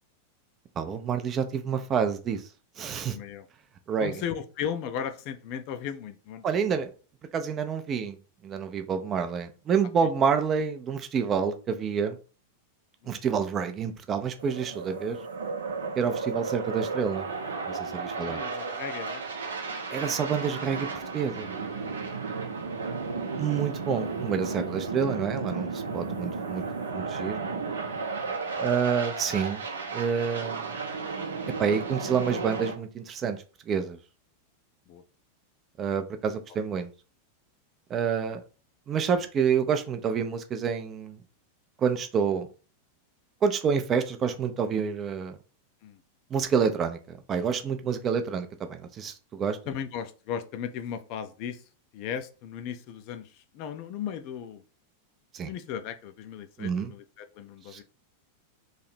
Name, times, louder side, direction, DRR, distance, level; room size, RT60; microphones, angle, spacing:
voice 1, 0.8-2.4 2.8-3.2 3.9-4.1 6.4-6.9 7.3-8.2 8.4-12.2 13.1-15.2 16.0-17.3 17.7-18.4 19.9-20.9 21.1-21.5 23.4-26.6 26.9-27.4 28.6-29.6 29.9-30.8 31.6-34.0 35.8-36.9 37.9-38.4 38.9-41.2 41.8-42.5 43.4-45.4 46.3-49.6 55.3-55.5 56.6-56.9 57.7-57.8, right 6 dB, 30° right, 8 dB, 0.5 m, -28 dB
voice 2, 3.1-3.5 4.0-6.8 10.0-10.1 13.0-13.2 18.2-19.2 22.3-22.8 28.3-28.6 34.9-35.0 45.8-46.0 49.7-51.6 51.9-54.6 55.4-57.8, left 8 dB, 45° left, 9 dB, 0.5 m, -37 dB
sound 1, 14.4-32.7, right 4 dB, 70° right, 0.6 m, -33 dB
3.2 x 2.8 x 4.1 m, 0.36 s
figure-of-eight pair, 90°, 0 cm